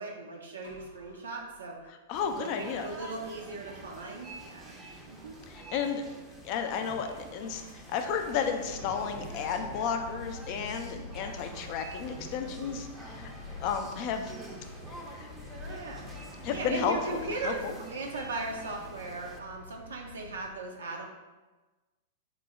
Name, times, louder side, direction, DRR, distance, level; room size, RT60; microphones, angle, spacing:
voice 1, 0.0-1.8 2.3-4.7 5.1-5.3 10.8-11.0 15.6-16.1 16.5-21.1, right 3 dB, 85° right, 0 dB, 0.4 m, -38 dB
sound 1, 0.6-1.9 7.4-20.5, left 3 dB, 75° left, 0.7 m, -47 dB
voice 2, 1.9-3.0 5.5-6.0 6.4-13.3 13.6-14.3 15.1-15.3 16.4-17.0 17.4-17.7, left 7 dB, 45° left, 6 dB, 0.4 m, -33 dB
sound 2, 2.1-19.4, right 2 dB, 10° right, 0.5 m, -47 dB
3.0 x 2.0 x 3.5 m, 1.2 s
hypercardioid pair, 105°, 0 cm